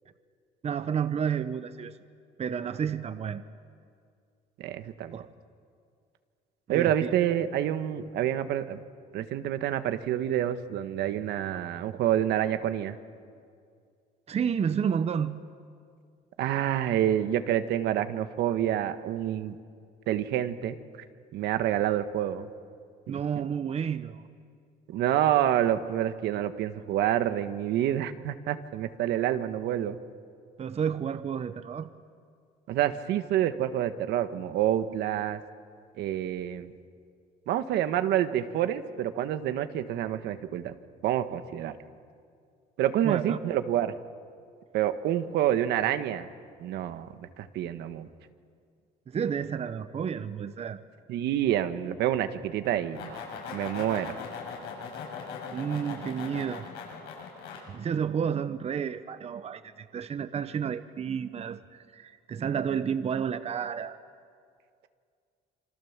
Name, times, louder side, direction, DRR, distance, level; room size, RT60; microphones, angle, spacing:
voice 1, 0.6-1.9 2.4-3.4 5.1-5.3 6.7-7.1 14.3-15.4 23.1-24.2 30.6-31.9 43.0-43.4 49.1-50.8 55.5-56.7 57.7-64.0, right 7 dB, 40° right, 12 dB, 1.0 m, -31 dB
voice 2, 4.6-5.2 6.7-8.8 9.1-13.0 16.4-19.6 20.1-20.8 21.3-22.5 23.1-23.2 24.9-30.0 32.7-35.4 36.0-36.7 37.5-40.7 41.0-41.7 42.8-43.9 44.7-46.3 46.6-48.1 51.1-53.2 53.5-54.1, right 11 dB, 80° right, 10 dB, 1.4 m, -28 dB
sound 1, 52.7-57.6, left 5 dB, 85° left, 7.3 m, -39 dB
27.0 x 25.5 x 7.4 m, 2.2 s
cardioid pair, 110°, 17 cm